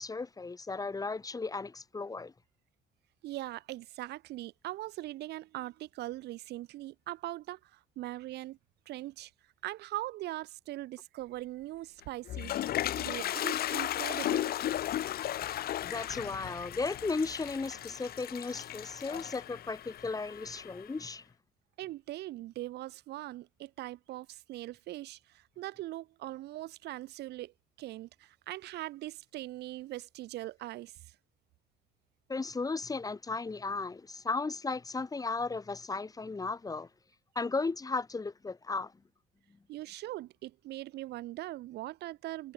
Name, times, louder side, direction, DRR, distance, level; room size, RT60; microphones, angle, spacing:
voice 1, 0.0-2.3 15.8-21.2 32.3-36.9 37.4-38.9, left 3 dB, 20° left, 5.8 m, -35 dB
voice 2, 3.2-8.6 8.9-9.3 9.6-12.5 13.0-14.5 21.8-25.2 25.6-27.5 27.8-30.9 39.7-42.5, right 16 dB, 80° right, 6.3 m, -41 dB
Toilet flush, 12.0-20.9, left 12 dB, 65° left, 3.2 m, -35 dB
cardioid pair, 110°, 17 cm